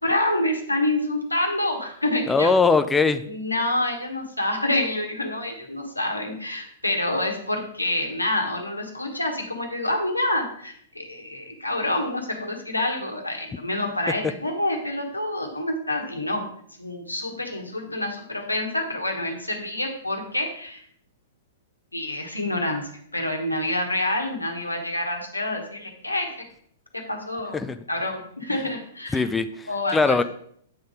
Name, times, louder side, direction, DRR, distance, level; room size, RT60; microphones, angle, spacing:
voice 1, 0.0-2.5 3.3-16.5 16.8-20.8 21.9-26.4 26.9-27.6 27.9-29.2 29.7-30.2, left 1 dB, 85° left, 3 dB, 1.3 m, -27 dB
voice 2, 2.3-3.2 27.5-27.8 29.1-30.2, left 4 dB, 10° left, 9 dB, 0.4 m, -21 dB
8.6 x 3.9 x 5.0 m, 0.63 s
figure-of-eight pair, 105°, 0 cm